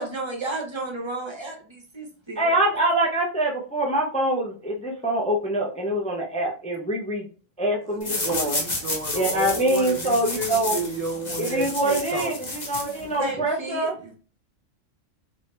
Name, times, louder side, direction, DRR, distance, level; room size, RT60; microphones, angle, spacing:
voice 1, 0.0-2.5 13.2-13.9, right 2 dB, 25° right, 1 dB, 0.7 m, -32 dB
voice 2, 2.4-7.2 7.6-8.6 9.1-10.8 11.4-13.9, right 1 dB, 10° left, -1 dB, 0.4 m, -24 dB
voice 3, 7.9-12.3 14.0-14.2, right 2 dB, 85° right, 3 dB, 0.3 m, -32 dB
sound 1, 8.0-13.3, left 2 dB, 35° left, 1.0 m, -31 dB
3.4 x 2.7 x 3.2 m, 0.39 s
omnidirectional pair, 1.3 m